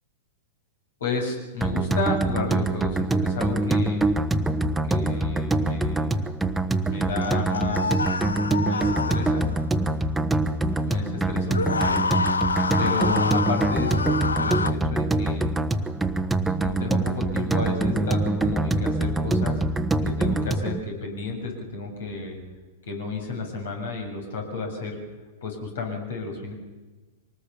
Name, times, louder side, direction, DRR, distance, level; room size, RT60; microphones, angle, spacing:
voice 1, 1.0-4.1 4.8-6.3 6.8-8.2 8.6-9.5 10.8-12.0 12.8-15.6 16.4-19.6 20.0-22.4 22.8-25.0 25.4-26.5, left 4 dB, 70° left, 3 dB, 7.2 m, -32 dB
sound 1, 1.6-20.8, right 2 dB, 5° right, 1.3 m, -24 dB
sound 2, 7.2-9.6 11.5-14.7, left 4 dB, 85° left, 0.7 m, -27 dB
24.0 x 20.0 x 7.1 m, 1.2 s
hypercardioid pair, 105°, 0 cm